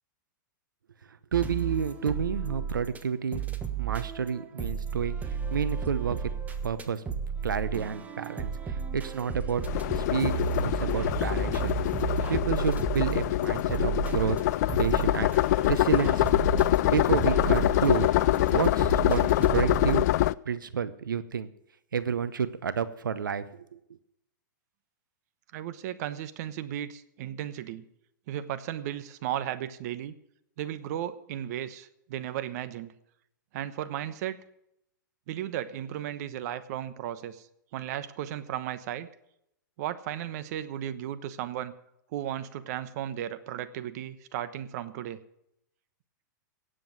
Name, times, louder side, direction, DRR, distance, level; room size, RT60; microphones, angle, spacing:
sound 1, 1.3-3.0 3.3-20.0, right 7 dB, 15° right, 1.3 m, -33 dB
voice 1, 1.3-3.4 3.8-6.3 6.6-7.0 7.4-9.6 9.9-10.3 10.6-11.8 12.3-14.4 14.8-15.3 15.7-16.3 16.8-18.1 18.5-20.0 20.5-21.5 21.9-23.8, right 7 dB, 90° right, 14 dB, 0.8 m, -30 dB
sound 2, 9.6-20.3, left 15 dB, 55° left, 0.4 m, -25 dB
voice 2, 25.5-27.8 28.3-30.1 30.6-32.9 33.5-34.4 35.3-37.5 37.7-39.1 39.8-41.7 42.1-45.2, right 11 dB, 55° right, 13 dB, 1.0 m, -35 dB
17.5 x 7.7 x 6.4 m, 0.77 s
hypercardioid pair, 120°, 11 cm